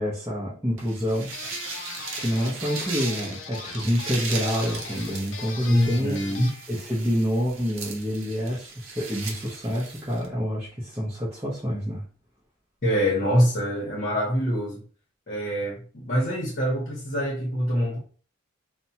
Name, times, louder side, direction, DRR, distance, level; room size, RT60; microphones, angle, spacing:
voice 1, 0.0-1.3 2.2-6.2 6.7-12.0, equal, 15° right, 0.6 m, -27 dB
sound 1, 0.8-10.3, right 4 dB, 75° right, 0.6 m, -38 dB
sound 2, 1.3-6.7, left 4 dB, 65° left, 0.5 m, -40 dB
voice 2, 5.7-6.5 12.8-14.8 15.3-18.0, equal, 45° left, 0.9 m, -24 dB
2.8 x 2.1 x 2.7 m
head